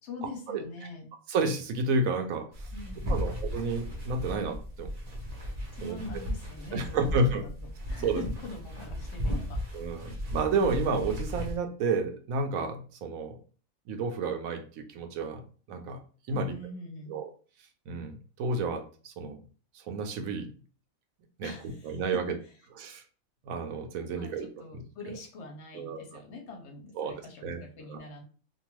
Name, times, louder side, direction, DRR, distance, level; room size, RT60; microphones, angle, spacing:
voice 1, 0.0-1.1 2.7-3.4 5.7-7.5 7.9-9.8 16.3-17.2 21.4-22.5 24.1-28.2, left 2 dB, 65° left, 2 dB, 0.8 m, -43 dB
voice 2, 1.3-2.5 3.1-4.9 5.8-6.2 6.7-7.4 8.0-8.2 9.7-13.4 13.9-15.4 15.7-16.0 16.3-16.5 17.1-17.3 17.9-19.4 19.7-20.5 21.4-21.5 21.8-22.4 22.7-23.0 23.5-24.5 24.7-24.8 25.7-26.2 27.0-27.6 27.9-28.0, right 3 dB, 75° right, 5 dB, 1.0 m, -31 dB
sound 1, 2.5-11.6, equal, 40° right, 0.6 m, -35 dB
2.7 x 2.3 x 2.9 m, 0.39 s
omnidirectional pair, 1.5 m